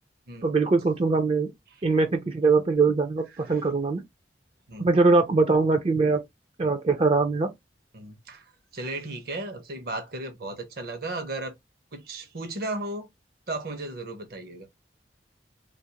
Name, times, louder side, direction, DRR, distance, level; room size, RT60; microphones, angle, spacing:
voice 1, 0.4-1.5 1.8-4.0 4.8-6.2 6.6-7.5, right 3 dB, 35° right, 0.4 m, -22 dB
voice 2, 7.9-11.5 11.9-13.1 13.5-14.7, right 2 dB, 60° right, 0.8 m, -35 dB
2.5 x 2.4 x 2.8 m
head